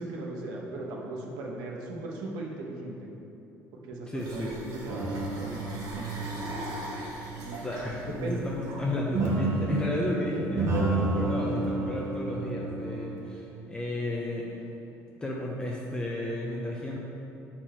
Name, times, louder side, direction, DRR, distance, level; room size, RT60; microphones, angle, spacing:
voice 1, 0.0-3.1 3.7-5.6 5.9-6.4 7.4-7.6 8.1-8.4, right 2 dB, 85° right, -1 dB, 1.0 m, -38 dB
voice 2, 4.1-4.5 7.0-7.1 7.6-14.5 15.2-17.0, left 1 dB, 15° left, -3 dB, 0.6 m, -32 dB
sound 1, 4.2-9.2, right 1 dB, 65° right, 1.3 m, -42 dB
sound 2, 4.9-7.9 9.1-13.2, right 2 dB, 45° right, 1.2 m, -31 dB
6.5 x 4.4 x 4.4 m, 2.9 s
cardioid pair, 130°, 6 cm